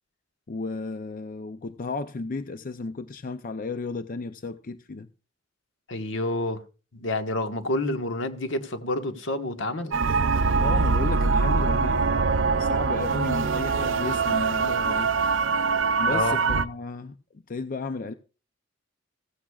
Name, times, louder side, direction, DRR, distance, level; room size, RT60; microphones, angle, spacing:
voice 1, 0.5-5.1 10.6-15.1 16.0-18.1, left 3 dB, 45° left, 0.5 m, -34 dB
voice 2, 5.9-6.6 6.9-10.0 16.1-16.4, left 2 dB, 70° left, 1.4 m, -28 dB
sound 1, 9.9-16.6, right 4 dB, 75° right, 0.6 m, -23 dB
16.0 x 15.0 x 2.4 m
head